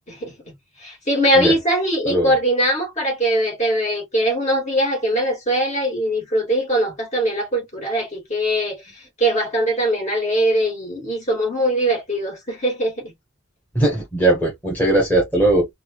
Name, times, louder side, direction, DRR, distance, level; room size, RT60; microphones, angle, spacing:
voice 1, 0.1-13.1, right 1 dB, 35° left, 2.5 m, -21 dB
voice 2, 13.7-15.7, right 1 dB, 10° left, 1.3 m, -18 dB
4.0 x 2.5 x 3.1 m
head